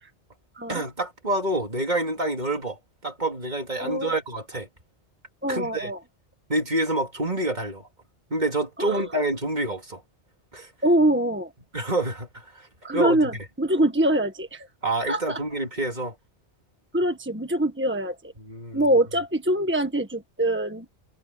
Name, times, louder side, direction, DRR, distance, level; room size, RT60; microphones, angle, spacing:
voice 1, 0.7-4.7 5.5-5.9 6.5-7.9 8.3-10.0 10.5-10.7 11.7-13.3 14.8-16.2 18.5-18.9, right 2 dB, 40° right, 3.1 m, -27 dB
voice 2, 3.8-4.2 5.4-6.0 8.8-9.0 10.8-11.5 12.8-14.7 15.1-15.4 16.9-18.3 18.7-20.9, right 1 dB, 10° right, 1.6 m, -24 dB
omnidirectional pair, 1.2 m